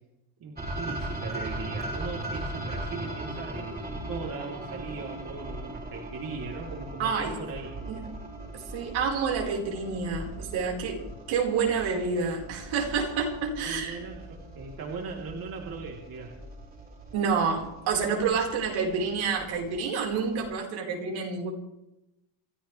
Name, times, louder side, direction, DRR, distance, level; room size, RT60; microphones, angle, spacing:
voice 1, 0.4-7.7 13.6-16.3, right 4 dB, 45° right, -1 dB, 3.6 m, -38 dB
sound 1, 0.6-20.5, right 1 dB, 20° right, 4.1 m, -39 dB
voice 2, 7.0-7.3 7.8-8.0 8.5-11.0 11.3-14.1 17.1-21.5, right 5 dB, 70° right, 0 dB, 4.9 m, -28 dB
29.0 x 13.5 x 3.4 m, 0.90 s
cardioid pair, 135°, 49 cm